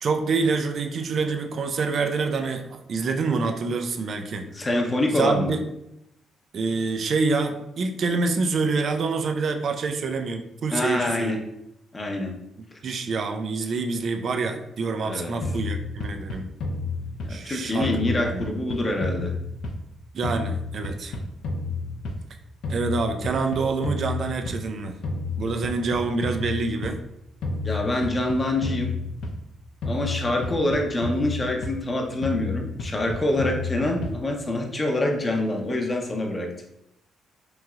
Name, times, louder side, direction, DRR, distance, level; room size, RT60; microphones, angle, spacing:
voice 1, 0.0-4.5 5.2-5.6 6.5-11.4 12.8-16.5 17.3-18.5 20.1-21.1 22.7-25.0 25.3-27.0, right 4 dB, 55° right, 5 dB, 0.4 m, -26 dB
voice 2, 4.5-5.5 10.7-11.4 11.9-12.4 15.0-15.3 17.2-19.3 27.6-29.0 29.8-36.5, left 1 dB, 25° left, 2 dB, 0.6 m, -25 dB
sound 1, 15.4-17.5 17.8-20.0 20.2-22.3 22.6-24.7 25.0-27.0 27.4-29.5 29.8-31.9 32.2-34.3, left 3 dB, 75° left, 0.4 m, -31 dB
3.0 x 2.8 x 2.3 m, 0.83 s
cardioid pair, 90°, 0 cm